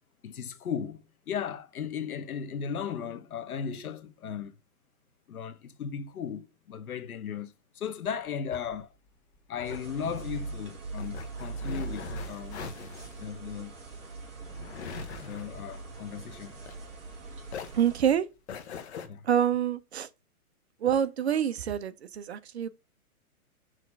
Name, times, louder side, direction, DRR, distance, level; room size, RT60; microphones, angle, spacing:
voice 1, 0.2-4.5 5.3-8.9 9.5-12.6 13.2-13.7 15.2-16.6 19.0-19.2, left 7 dB, 75° left, 1.1 m, -36 dB
sound 1, 8.1-17.2 17.5-19.1, left 6 dB, 45° left, 1.2 m, -43 dB
sound 2, 9.6-18.1, right 4 dB, 15° right, 1.3 m, -41 dB
voice 2, 17.8-18.3 19.2-20.1 20.8-22.7, right 9 dB, 45° right, 0.6 m, -26 dB
6.5 x 3.1 x 5.3 m
hypercardioid pair, 160°, 44 cm